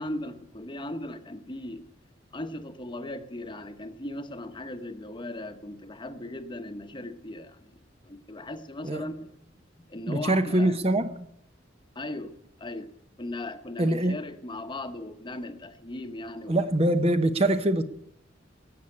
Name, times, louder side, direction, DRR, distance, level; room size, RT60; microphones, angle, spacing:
voice 1, 0.0-1.9 2.3-9.4 9.9-10.8 11.9-12.9 13.2-16.6, left 1 dB, 25° left, 9 dB, 1.0 m, -38 dB
voice 2, 10.1-11.3 13.8-14.2 16.5-17.8, right 1 dB, 35° right, 10 dB, 0.9 m, -24 dB
17.5 x 7.3 x 9.9 m, 0.74 s
head